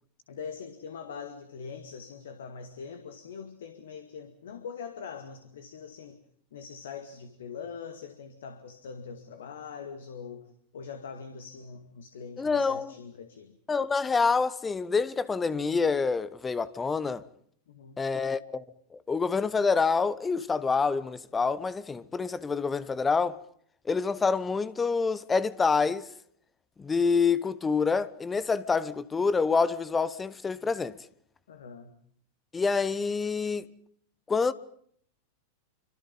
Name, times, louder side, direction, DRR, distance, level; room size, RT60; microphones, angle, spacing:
voice 1, 0.3-6.2 6.5-13.6 17.7-18.0 31.5-31.9, left 6 dB, 60° left, 2.1 m, -42 dB
voice 2, 12.4-12.9 13.7-17.2 18.0-18.6 19.1-23.4 23.8-26.1 26.8-30.9 32.5-33.7 34.3-34.5, left 4 dB, 15° left, 1.1 m, -27 dB
27.0 x 25.5 x 5.5 m
figure-of-eight pair, 90°, 0 cm